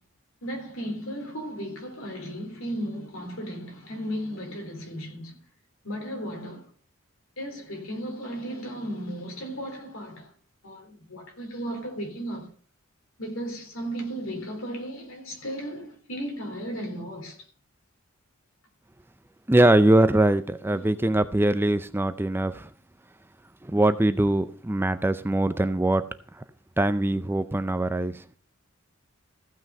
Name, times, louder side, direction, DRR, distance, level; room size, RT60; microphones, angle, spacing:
voice 1, 0.4-5.3 5.8-6.7 7.4-10.3 10.6-12.5 13.2-17.4 20.7-21.1, equal, 75° left, 3.7 m, -35 dB
voice 2, 19.5-22.7 23.6-26.0 26.8-28.2, right 1 dB, 10° right, 0.5 m, -22 dB
15.0 x 6.2 x 5.5 m
head